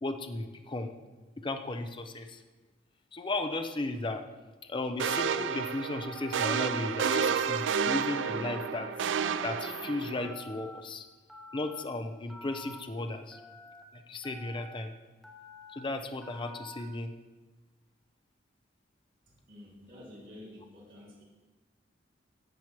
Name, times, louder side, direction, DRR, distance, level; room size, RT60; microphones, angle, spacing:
voice 1, 0.0-0.9 1.4-2.4 3.1-4.2 4.7-8.9 9.4-11.1 11.5-13.4 13.9-14.9 15.7-17.1, left 2 dB, 25° left, 6 dB, 0.6 m, -35 dB
Telephone, 5.0-5.5 6.0-6.6 7.1-7.7 8.1-8.7 9.1-9.7 10.2-10.8 11.3-11.8 12.3-12.8 13.3-13.8 14.2-14.8 15.2-15.8 16.2-16.8, left 1 dB, ahead, 1.0 m, -49 dB
sound 1, 5.0-10.3, right 6 dB, 85° right, 0.4 m, -30 dB
voice 2, 19.3-21.2, left 1 dB, 50° right, -8 dB, 3.6 m, -50 dB
10.5 x 7.3 x 4.6 m, 1.2 s
head